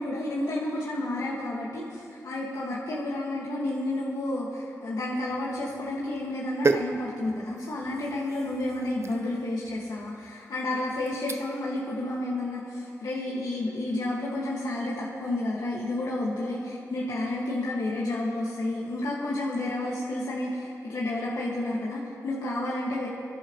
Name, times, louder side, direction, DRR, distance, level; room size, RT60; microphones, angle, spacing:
voice 1, 0.0-23.1, left 1 dB, 75° left, -6 dB, 2.0 m, -31 dB
sound 1, 5.3-11.7 12.1-12.4, right 3 dB, 45° right, 0.7 m, -35 dB
29.0 x 11.5 x 3.2 m, 2.4 s
cardioid pair, 60°, 6 cm